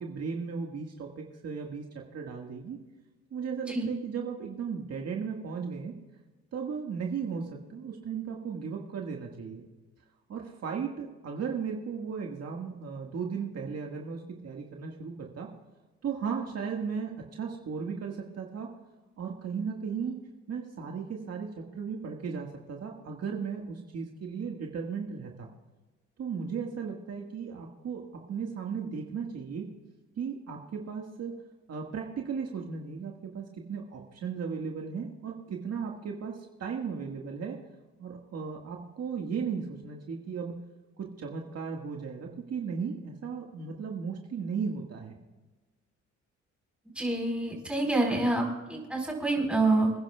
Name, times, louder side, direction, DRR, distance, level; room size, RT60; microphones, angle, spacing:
voice 1, 0.0-1.8 2.1-2.8 3.3-5.9 6.5-9.7 10.3-15.5 16.0-18.7 19.2-20.2 20.5-25.5 26.2-28.0 28.3-29.7 30.2-31.3 31.7-37.6 38.0-40.6 41.0-45.2, right 6 dB, 55° right, 0 dB, 1.8 m, -36 dB
voice 2, 47.0-49.9, right 2 dB, 5° right, 0 dB, 4.4 m, -27 dB
26.5 x 10.5 x 2.4 m, 1.2 s
cardioid pair, 90°, 30 cm